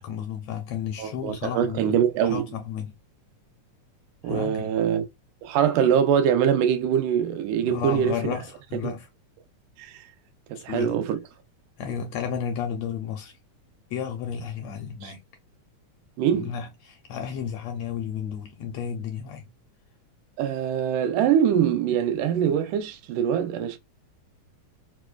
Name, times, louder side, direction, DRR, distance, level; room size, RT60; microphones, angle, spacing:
voice 1, 0.0-2.0 2.3-2.9 4.2-4.7 7.6-9.1 10.5-11.0 11.8-13.4 13.9-15.2 16.3-19.5, left 8 dB, 80° left, 1.6 m, -32 dB
voice 2, 1.0-2.4 4.2-5.0 5.4-8.3 9.8-9.9 10.5-11.2 15.0-15.1 16.2-16.5 20.4-23.8, right 9 dB, 90° right, 2.2 m, -23 dB
5.1 x 2.3 x 2.3 m
omnidirectional pair, 3.5 m